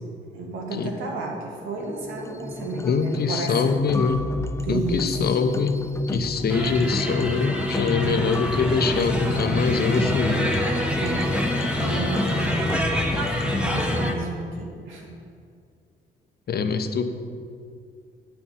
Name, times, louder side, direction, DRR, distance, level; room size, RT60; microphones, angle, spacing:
voice 1, 0.3-3.8 4.7-5.1 10.9-11.3 11.8-12.6 13.4-15.2, right 3 dB, 85° right, 0 dB, 2.0 m, -32 dB
sound 1, 1.9-14.1, left 2 dB, 15° left, 0.4 m, -30 dB
voice 2, 2.8-4.2 4.7-5.8 6.1-10.5 16.5-17.0, left 5 dB, 50° left, 8 dB, 0.9 m, -24 dB
sound 2, 6.5-14.1, equal, 5° right, 1.4 m, -27 dB
9.6 x 5.7 x 7.7 m, 2.2 s
cardioid pair, 90°, 20 cm